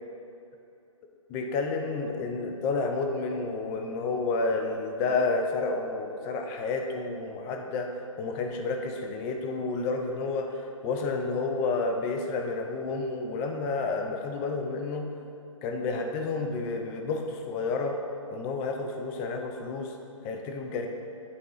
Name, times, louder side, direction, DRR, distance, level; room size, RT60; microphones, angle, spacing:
voice 1, 1.3-15.1 15.6-18.0 18.3-19.9 20.2-20.9, left 3 dB, 10° left, 4 dB, 0.3 m, -30 dB
11.0 x 3.7 x 3.0 m, 2.7 s
hypercardioid pair, 145°, 17 cm